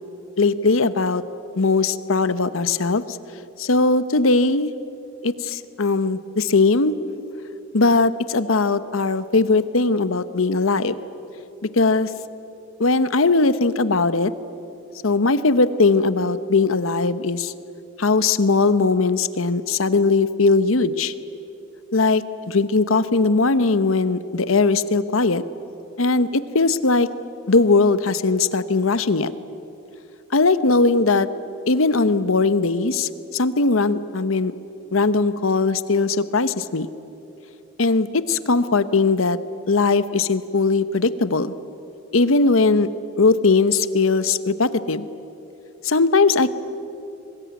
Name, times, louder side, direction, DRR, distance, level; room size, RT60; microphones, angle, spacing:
voice 1, 0.4-1.2 1.6-3.0 3.6-4.7 5.2-6.9 7.7-10.9 11.8-12.1 12.8-14.3 15.0-17.5 18.0-21.1 21.9-25.4 26.0-27.1 27.5-29.3 30.3-31.3 31.7-34.5 34.9-36.9 37.8-39.4 39.7-41.5 42.1-42.9 43.2-45.1 45.8-46.6, left 3 dB, 85° left, 14 dB, 1.0 m, -19 dB
24.0 x 20.5 x 9.6 m, 2.9 s
head